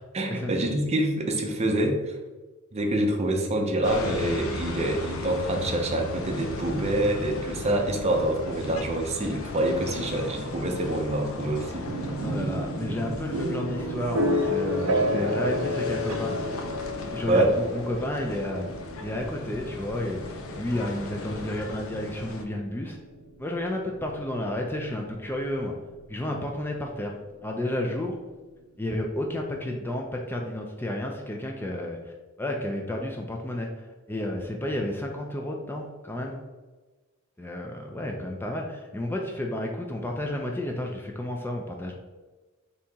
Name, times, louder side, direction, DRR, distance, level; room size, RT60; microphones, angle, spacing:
voice 1, 0.1-2.2 2.7-12.1 17.3-17.5, right 1 dB, 30° right, 2 dB, 0.6 m, -26 dB
sound 1, 3.8-22.4, left 2 dB, 80° left, 0.6 m, -37 dB
sound 2, 11.9-25.6, equal, 85° right, 0.5 m, -31 dB
voice 2, 12.2-16.4 17.1-18.7 19.0-23.0 23.4-25.7 26.1-28.2 28.8-32.1 32.4-36.4 37.4-41.9, left 1 dB, 10° left, 1 dB, 0.3 m, -31 dB
4.1 x 2.8 x 3.5 m, 1.3 s
head